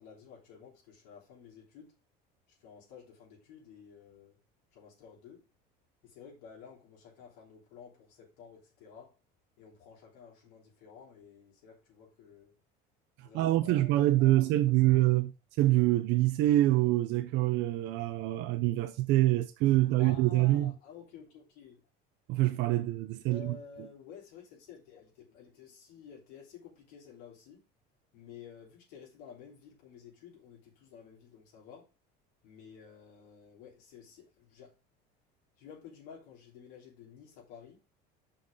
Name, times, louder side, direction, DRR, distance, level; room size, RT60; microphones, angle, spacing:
voice 1, 0.0-1.9 2.5-4.4 4.7-5.5 6.0-9.2 9.6-12.5 13.2-13.9 14.2-15.2 19.8-21.8 23.3-27.7 28.1-31.9 32.4-34.8 35.6-37.8, left 7 dB, 85° left, 3.2 m, -52 dB
voice 2, 13.2-15.3 15.6-20.7 22.3-23.6, right 16 dB, 65° right, 0.7 m, -26 dB
5.8 x 5.3 x 4.9 m
cardioid pair, 120°, 20 cm